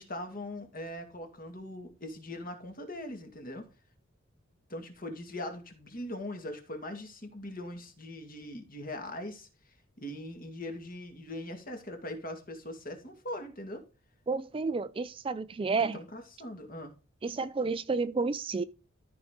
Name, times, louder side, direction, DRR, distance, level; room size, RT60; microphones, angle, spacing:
voice 1, 0.0-3.7 4.7-13.8 15.8-16.9, left 1 dB, 45° left, 2.1 m, -41 dB
voice 2, 14.3-16.0 17.2-18.6, right 4 dB, 25° right, 0.3 m, -31 dB
13.5 x 5.0 x 3.8 m
head